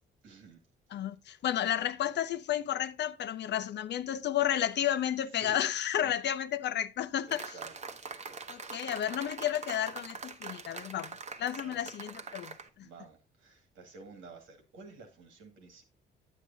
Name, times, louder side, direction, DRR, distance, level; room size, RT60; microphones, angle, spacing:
voice 1, 0.2-0.6 5.4-5.6 6.0-6.1 7.3-8.0 8.2-8.4 11.6-11.8 12.8-15.8, right 3 dB, 85° right, 2.1 m, -51 dB
voice 2, 0.9-7.6 8.5-12.9, left 10 dB, 60° left, 0.6 m, -32 dB
sound 1, 7.3-12.7, right 5 dB, 35° right, 0.9 m, -43 dB
9.2 x 8.2 x 2.7 m
cardioid pair, 90°, 20 cm